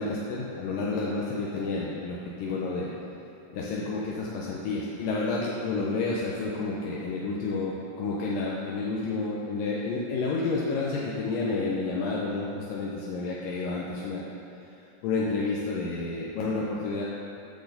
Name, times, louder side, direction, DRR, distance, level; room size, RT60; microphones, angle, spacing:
voice 1, 0.0-2.9 3.5-14.2 15.0-17.0, left 3 dB, 80° left, -4 dB, 2.1 m, -30 dB
10.0 x 4.2 x 6.7 m, 2.7 s
omnidirectional pair, 4.6 m